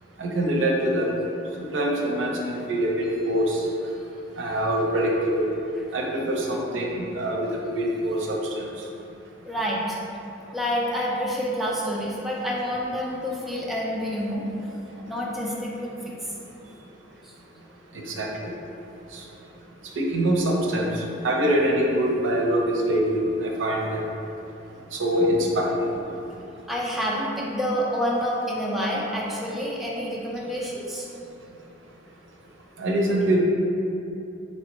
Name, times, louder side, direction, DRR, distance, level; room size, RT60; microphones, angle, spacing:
voice 1, 0.2-1.1 1.6-3.6 4.4-5.5 5.9-7.5 7.7-8.7 18.1-18.5 19.1-19.2 20.0-24.0 24.9-25.8 32.8-33.4, right 1 dB, 80° right, -1 dB, 0.6 m, -24 dB
voice 2, 9.4-10.0 10.5-14.4 15.1-15.9 17.2-17.3 26.7-31.1, equal, ahead, -5 dB, 0.4 m, -28 dB
4.2 x 3.2 x 3.0 m, 2.8 s
head